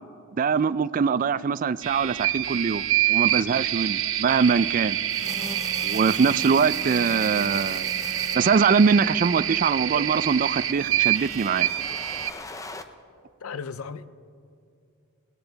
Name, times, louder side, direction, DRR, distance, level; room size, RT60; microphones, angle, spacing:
voice 1, 0.4-5.0 5.8-7.9 8.3-11.7, right 5 dB, 40° right, 0.3 m, -23 dB
sound 1, 1.8-12.3, right 12 dB, 60° right, 0.7 m, -27 dB
sound 2, 5.1-8.4 9.5-12.8, left 3 dB, 15° left, 0.6 m, -42 dB
Wind instrument woodwind instrument, 5.2-9.8, equal, 45° left, 2.0 m, -43 dB
voice 2, 13.4-14.1, left 5 dB, 75° left, 0.5 m, -35 dB
20.5 x 17.5 x 4.0 m
head